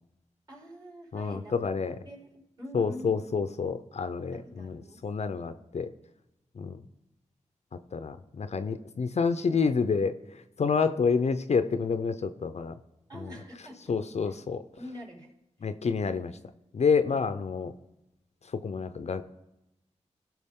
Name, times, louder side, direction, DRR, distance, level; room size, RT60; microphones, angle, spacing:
voice 1, 0.5-3.2 4.2-5.0 13.1-13.9 14.3-14.4 14.7-15.3, equal, 30° right, -1 dB, 4.0 m, -45 dB
voice 2, 1.1-1.9 2.7-5.9 6.6-6.8 7.9-12.7 13.2-13.3 13.9-14.6 15.6-16.3 16.7-17.7 18.5-19.2, left 5 dB, 60° left, 10 dB, 0.6 m, -28 dB
16.5 x 5.9 x 3.7 m, 0.90 s
cardioid pair, 55°, 13 cm